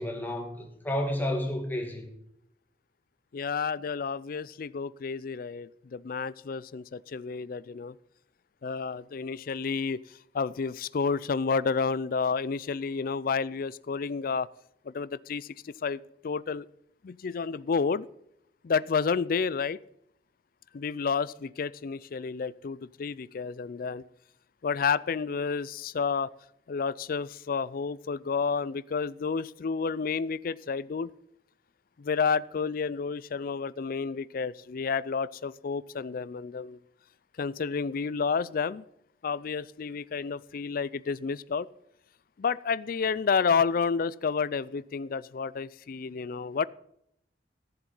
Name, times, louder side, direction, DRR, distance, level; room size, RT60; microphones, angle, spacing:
voice 1, 0.0-2.1, left 1 dB, 10° left, 1 dB, 2.3 m, -31 dB
voice 2, 3.3-7.9 8.6-10.0 10.3-14.5 14.9-16.7 17.0-18.1 18.6-19.8 20.7-24.0 24.6-26.3 26.7-31.1 32.0-36.8 37.4-38.8 39.2-41.7 42.4-46.7, left 5 dB, 50° left, 19 dB, 0.4 m, -30 dB
13.5 x 7.3 x 5.5 m, 0.77 s
head